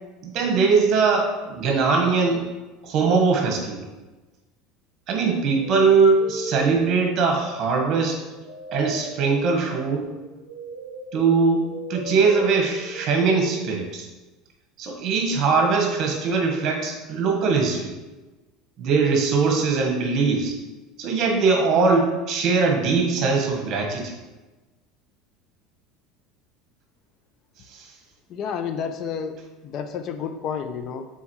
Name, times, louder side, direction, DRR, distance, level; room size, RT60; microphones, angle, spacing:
voice 1, 0.2-2.4 2.8-3.9 5.1-8.2 8.7-10.1 11.1-11.6 11.9-14.1 14.8-17.9 18.8-20.6 21.0-24.1 27.7-27.9, right 4 dB, 45° right, 2 dB, 1.4 m, -21 dB
sound 1, 6.2-13.8, right 1 dB, 10° right, 1.8 m, -37 dB
voice 2, 28.3-31.1, left 7 dB, 45° left, 8 dB, 0.5 m, -30 dB
7.2 x 4.2 x 3.1 m, 1.2 s
supercardioid pair, 130°, 0 cm